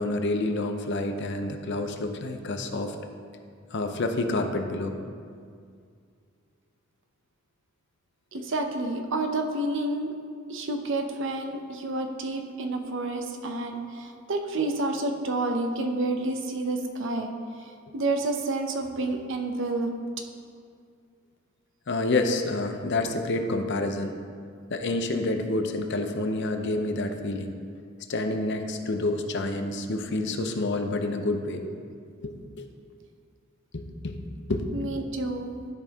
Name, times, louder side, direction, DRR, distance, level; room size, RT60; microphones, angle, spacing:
voice 1, 0.0-3.0 3.7-4.9 21.9-24.1 24.7-27.5 28.1-31.6 32.2-32.3 32.6-32.7 33.7-34.2 34.5-34.7, left 2 dB, 60° left, 6 dB, 0.7 m, -28 dB
voice 2, 8.3-10.1 10.5-17.3 17.9-19.9 34.7-35.5, right 2 dB, 65° right, 4 dB, 0.8 m, -29 dB
12.5 x 5.3 x 3.6 m, 2.2 s
head